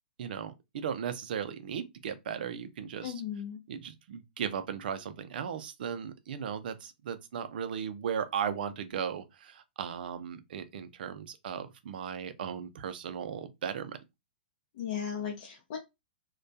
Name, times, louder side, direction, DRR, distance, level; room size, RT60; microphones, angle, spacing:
voice 1, 0.2-3.2 3.7-14.0, right 8 dB, 65° right, 0.4 m, -36 dB
voice 2, 3.0-3.6 14.7-15.8, left 8 dB, 55° left, 0.6 m, -36 dB
2.2 x 2.2 x 2.6 m
hypercardioid pair, 130°, 5 cm